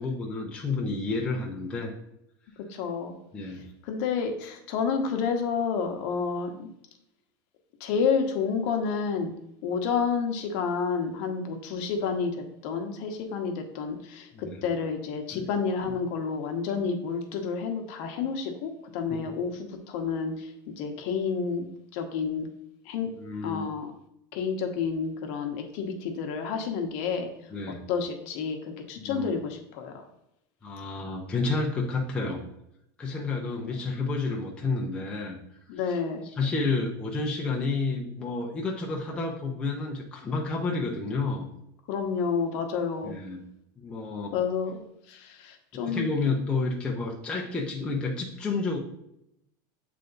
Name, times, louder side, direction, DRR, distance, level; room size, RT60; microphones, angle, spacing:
voice 1, 0.0-1.9 3.3-3.6 14.3-14.6 15.3-15.5 19.1-19.2 23.2-23.7 27.5-27.8 29.0-29.3 30.6-32.4 33.0-35.4 36.4-41.5 43.0-43.4 43.8-44.3 45.7-48.8, left 3 dB, 10° left, -1 dB, 0.5 m, -30 dB
voice 2, 2.6-3.1 3.8-6.7 7.8-9.3 9.6-21.7 21.9-22.5 22.8-23.1 23.4-23.9 24.3-27.3 27.9-30.1 33.6-33.7 35.7-36.2 41.9-43.2 44.3-44.8 45.1-46.1, left 5 dB, 50° left, 4 dB, 0.9 m, -30 dB
7.7 x 3.3 x 3.9 m, 0.79 s
supercardioid pair, 175°, 11 cm